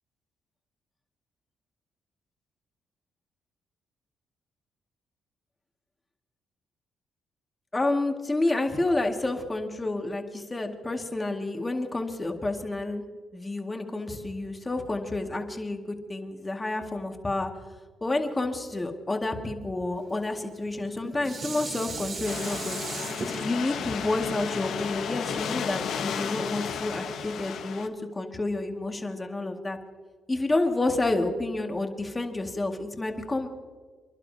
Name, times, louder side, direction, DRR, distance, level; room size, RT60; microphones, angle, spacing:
voice 1, 7.7-13.0 13.3-17.5 18.0-22.8 23.3-29.8 30.3-33.5, left 2 dB, 20° left, 3 dB, 2.0 m, -29 dB
Dishes pots and pans, 20.6-25.9 26.5-26.6, right 4 dB, 50° right, 2.5 m, -38 dB
sound 1, 22.2-27.9, left 7 dB, 75° left, 1.1 m, -33 dB
29.0 x 11.5 x 2.8 m, 1.5 s
cardioid pair, 90°, 0 cm